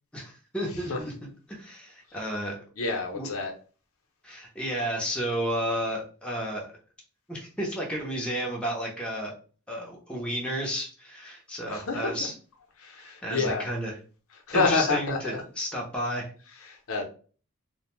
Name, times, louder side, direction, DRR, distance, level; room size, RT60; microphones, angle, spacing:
voice 1, 0.1-1.1 1.5-2.6 3.1-3.3 4.2-6.7 7.3-9.3 9.7-12.3 13.0-14.0 14.5-16.3, equal, 5° left, -2 dB, 0.5 m, -32 dB
voice 2, 2.8-3.5 11.7-12.1 12.8-13.6 14.5-15.4 16.7-17.1, left 4 dB, 70° left, 3 dB, 0.6 m, -28 dB
2.5 x 2.1 x 3.0 m, 0.39 s
head